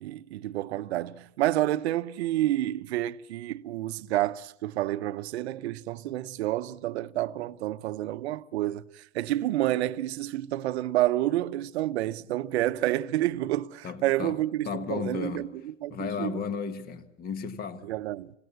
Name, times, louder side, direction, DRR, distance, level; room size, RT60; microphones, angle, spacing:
voice 1, 0.0-15.5 15.8-16.3 17.8-18.3, right 14 dB, 60° right, 0.9 m, -29 dB
voice 2, 13.8-15.5 15.9-17.9, left 6 dB, 25° left, 1.6 m, -34 dB
26.5 x 17.0 x 8.4 m
hypercardioid pair, 130°, 37 cm